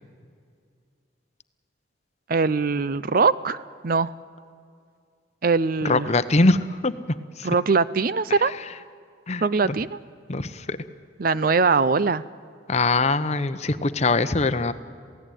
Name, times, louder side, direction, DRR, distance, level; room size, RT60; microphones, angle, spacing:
voice 1, 2.3-4.1 5.4-6.1 7.4-8.5 9.4-10.0 11.2-12.2, right 4 dB, 50° right, 16 dB, 0.6 m, -22 dB
voice 2, 5.8-6.9 7.4-7.5 9.3-9.8 10.3-10.8 12.7-14.7, left 3 dB, 35° left, 12 dB, 0.8 m, -22 dB
27.5 x 17.0 x 9.2 m, 2.3 s
head